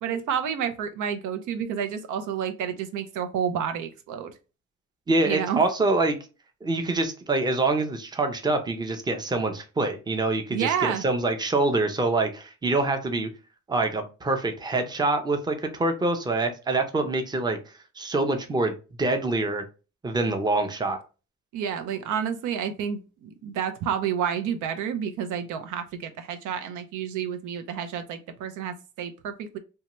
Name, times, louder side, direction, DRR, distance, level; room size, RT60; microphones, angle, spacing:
voice 1, 0.0-4.3 5.2-5.6 10.5-11.0 21.5-29.6, right 8 dB, 80° right, 8 dB, 0.5 m, -30 dB
voice 2, 5.1-6.2 6.6-13.3 13.7-17.6 18.0-18.7 19.0-19.6 20.0-21.0, right 2 dB, 15° right, 6 dB, 0.5 m, -25 dB
2.7 x 2.2 x 2.9 m, 0.32 s
cardioid pair, 90°, 30 cm